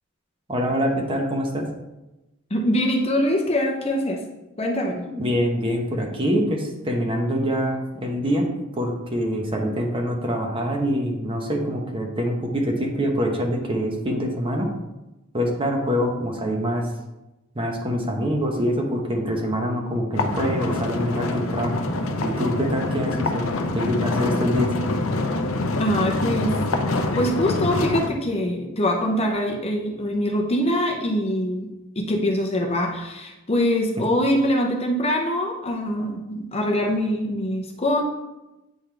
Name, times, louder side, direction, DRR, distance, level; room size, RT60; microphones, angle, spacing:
voice 1, 0.5-1.7 5.1-8.5 8.7-14.7 15.3-16.9 17.5-21.8 22.2-24.7 33.9-34.0, equal, 25° right, 1 dB, 0.9 m, -25 dB
voice 2, 2.5-4.2 4.6-5.0 25.8-26.6 27.2-31.7 32.0-38.0, left 1 dB, 30° left, 1 dB, 0.7 m, -23 dB
sound 1, 20.2-28.1, left 2 dB, 65° left, 0.6 m, -25 dB
8.9 x 3.9 x 3.3 m, 0.99 s
head